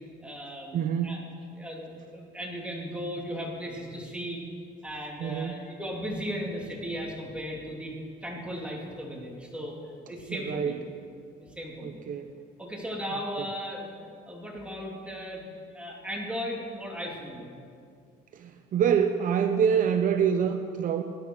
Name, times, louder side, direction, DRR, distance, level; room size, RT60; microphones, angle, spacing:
voice 1, 0.2-1.2 1.6-4.4 4.8-7.9 8.2-9.7 10.1-10.8 11.6-12.0 12.6-15.4 15.7-17.4, equal, 5° right, -2 dB, 2.7 m, -36 dB
voice 2, 0.7-1.2 5.2-5.6 10.3-10.8 11.8-12.4 13.4-13.5 18.3-21.0, right 7 dB, 50° right, 7 dB, 0.7 m, -26 dB
19.5 x 11.0 x 4.7 m, 2.3 s
cardioid pair, 110°, 17 cm